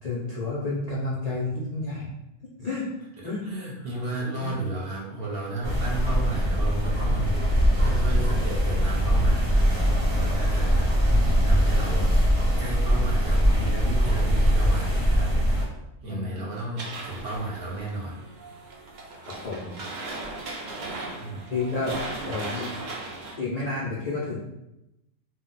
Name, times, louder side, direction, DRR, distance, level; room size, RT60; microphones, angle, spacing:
voice 1, 0.0-2.1 2.6-2.9 3.2-3.4 4.4-4.6 16.1-16.3 19.2-19.8 21.5-22.0 22.3-22.7 23.4-24.4, left 3 dB, 75° left, -6 dB, 0.3 m, -30 dB
voice 2, 3.2-7.4 7.8-9.7 10.1-12.1 12.6-15.3 16.0-18.2 21.2-21.6, right 2 dB, 55° right, -3 dB, 0.8 m, -33 dB
sound 1, 5.6-15.6, equal, 30° right, 0.9 m, -22 dB
sound 2, 16.8-23.3, right 2 dB, 85° right, 0.4 m, -37 dB
2.2 x 2.0 x 3.8 m, 0.90 s
omnidirectional pair, 1.4 m